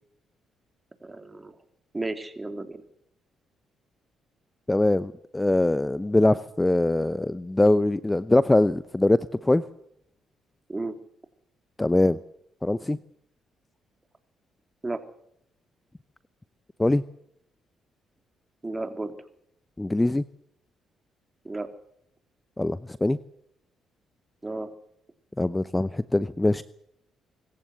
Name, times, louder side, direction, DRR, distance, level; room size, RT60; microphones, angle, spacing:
voice 1, 1.0-1.6 1.9-2.8 10.7-10.9 14.8-15.0 18.6-19.1 21.4-21.7 24.4-24.7, right 2 dB, 20° right, 7 dB, 3.7 m, -33 dB
voice 2, 4.7-9.2 9.4-9.6 11.8-12.2 12.6-13.0 16.8-17.0 19.8-20.2 22.6-23.2 25.4-26.6, left 2 dB, 15° left, 16 dB, 0.8 m, -22 dB
25.5 x 14.5 x 8.1 m, 0.72 s
hypercardioid pair, 50°, 0 cm